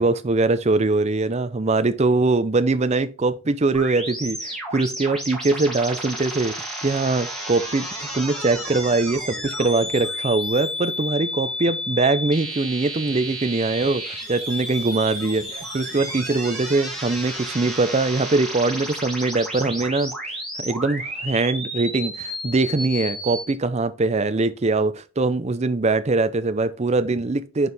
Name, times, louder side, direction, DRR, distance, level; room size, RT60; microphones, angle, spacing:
voice 1, 0.0-20.1 20.6-27.7, right 3 dB, 30° right, 0.5 m, -22 dB
sound 1, 3.7-23.5, equal, ahead, 2.0 m, -32 dB
6.6 x 4.5 x 3.5 m
head